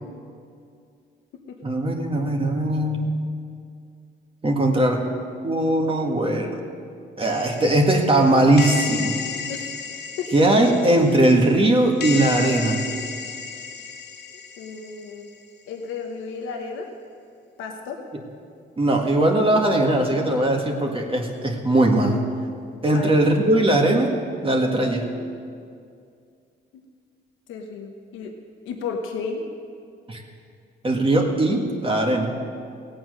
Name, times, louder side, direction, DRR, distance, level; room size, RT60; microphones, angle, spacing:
voice 1, 1.6-3.1 4.4-5.0 5.4-6.6 7.2-9.2 10.3-12.8 18.8-22.2 22.8-24.1 24.4-25.1 30.1-30.2 30.8-32.4, right 1 dB, 25° right, 1 dB, 1.8 m, -20 dB
sound 1, 7.2-15.3, left 6 dB, 55° left, 0.8 m, -33 dB
voice 2, 14.6-15.3 15.7-16.9 17.6-18.0 22.9-23.1 27.5-28.3 28.6-29.5, left 5 dB, 90° left, 3 dB, 1.2 m, -33 dB
16.5 x 8.7 x 6.5 m, 2.3 s
cardioid pair, 90°, 20 cm